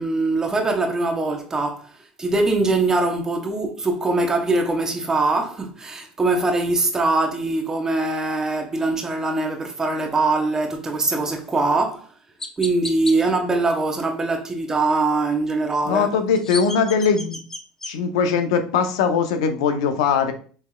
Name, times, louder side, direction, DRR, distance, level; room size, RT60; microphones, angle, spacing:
voice 1, 0.0-1.9 2.2-12.1 12.6-16.2, right 2 dB, 20° right, 0.9 m, -22 dB
Chirp tweet, 11.5-11.6 12.4-13.2 16.1-17.9, left 2 dB, 15° left, 0.6 m, -33 dB
voice 2, 15.9-17.4 17.9-20.3, left 6 dB, 85° left, 0.6 m, -20 dB
5.6 x 3.2 x 2.3 m
supercardioid pair, 100°, 3 cm